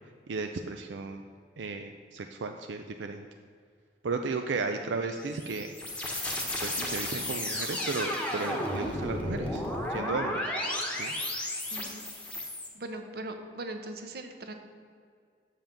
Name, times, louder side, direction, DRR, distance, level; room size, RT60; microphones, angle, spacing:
voice 1, 0.3-1.2 1.6-3.3 4.0-5.7 6.1-6.2 6.6-9.6 9.9-10.5 11.0-11.1, right 4 dB, 85° right, 6 dB, 0.5 m, -34 dB
sound 1, 5.1-12.7, left 1 dB, 5° left, 1.1 m, -33 dB
voice 2, 11.7-12.0 12.7-14.5, right 2 dB, 60° right, 6 dB, 0.9 m, -40 dB
6.8 x 5.6 x 7.2 m, 2.2 s
head